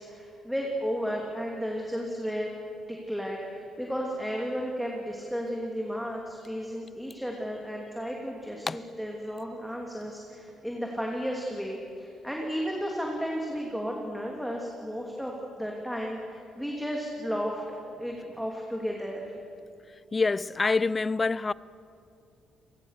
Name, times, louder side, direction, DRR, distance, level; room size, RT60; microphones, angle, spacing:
voice 1, 0.0-2.5 2.9-19.3, equal, ahead, 2.9 m, -33 dB
voice 2, 20.1-21.5, left 3 dB, 25° left, 0.5 m, -26 dB
29.5 x 19.0 x 6.7 m
cardioid pair, 110°, 0 cm